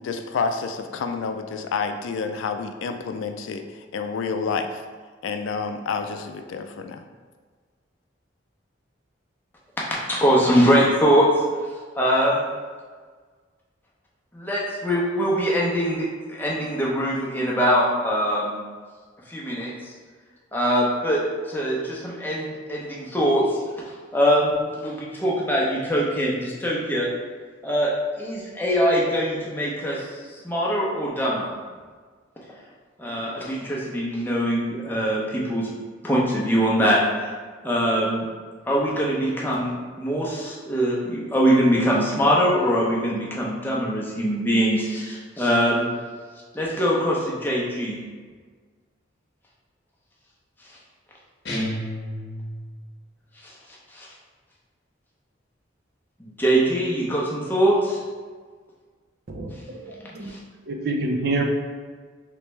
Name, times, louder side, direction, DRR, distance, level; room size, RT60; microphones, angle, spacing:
voice 1, 0.0-3.6 3.9-4.7 5.2-7.0, left 5 dB, 85° left, 7 dB, 0.3 m, -29 dB
voice 2, 9.8-11.3 12.0-12.5 14.3-18.6 19.3-19.9 20.5-23.6 24.1-27.1 27.6-30.1 30.4-31.5 33.0-35.7 36.0-37.3 37.6-38.3 38.7-45.9 46.5-48.0 53.9-54.1 56.2-58.0 60.2-60.4, equal, 10° left, -5 dB, 0.6 m, -22 dB
sound 1, 51.4-52.8, equal, 60° left, 0.8 m, -30 dB
voice 3, 59.3-60.3 60.7-61.4, right 2 dB, 55° right, 2 dB, 0.4 m, -27 dB
3.3 x 3.1 x 3.1 m, 1.5 s
head